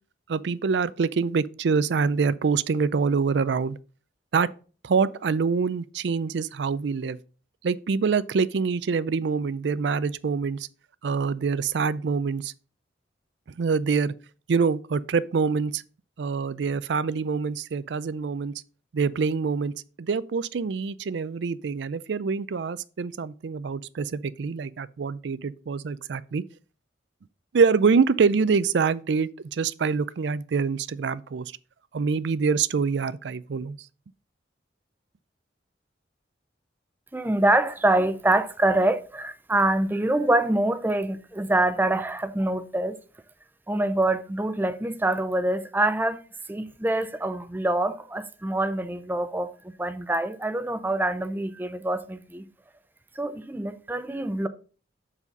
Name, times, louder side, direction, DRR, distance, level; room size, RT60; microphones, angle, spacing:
voice 1, 0.3-3.8 4.3-4.5 4.8-7.2 7.6-10.7 11.0-12.5 13.6-14.1 14.5-15.8 16.2-18.5 18.9-19.7 20.0-26.4 27.5-31.5 31.9-33.8, right 5 dB, 75° right, 0.4 m, -25 dB
voice 2, 37.1-43.0 43.7-46.2 46.5-52.4 53.2-54.5, right 1 dB, 10° right, 0.5 m, -25 dB
7.2 x 4.2 x 5.2 m
head